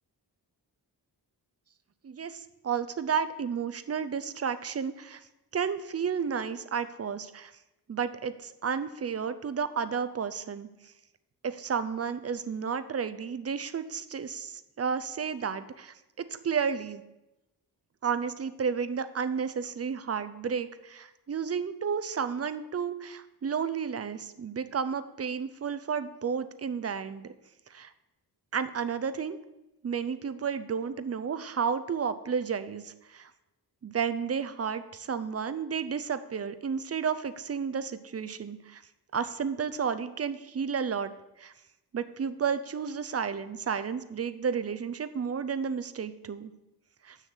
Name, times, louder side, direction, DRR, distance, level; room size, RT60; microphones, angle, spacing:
voice 1, 2.0-5.2 5.5-7.5 7.9-10.7 11.4-17.0 18.0-27.3 27.7-27.9 28.5-29.4 29.8-33.3 33.8-38.8 39.1-41.1 41.4-41.5 41.9-46.5 47.0-47.2, right 6 dB, 40° right, 11 dB, 0.6 m, -32 dB
7.1 x 6.5 x 6.6 m, 0.98 s
wide cardioid pair, 110°, 40 cm